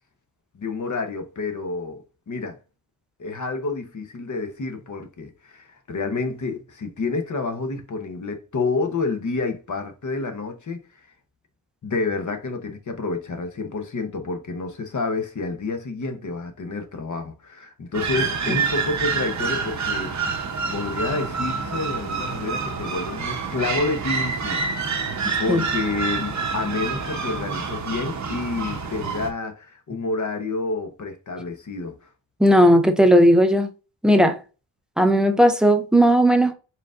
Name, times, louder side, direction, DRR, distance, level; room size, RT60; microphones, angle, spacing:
voice 1, 0.5-2.6 3.2-10.8 11.8-20.1 20.7-25.0 25.4-32.0, left 3 dB, 40° left, 0.9 m, -29 dB
sound 1, 17.9-29.3, right 5 dB, 35° right, 0.8 m, -27 dB
voice 2, 32.4-33.7 34.0-34.4 35.0-36.5, equal, ahead, 0.5 m, -16 dB
4.5 x 3.7 x 2.4 m
wide cardioid pair, 105°, 47 cm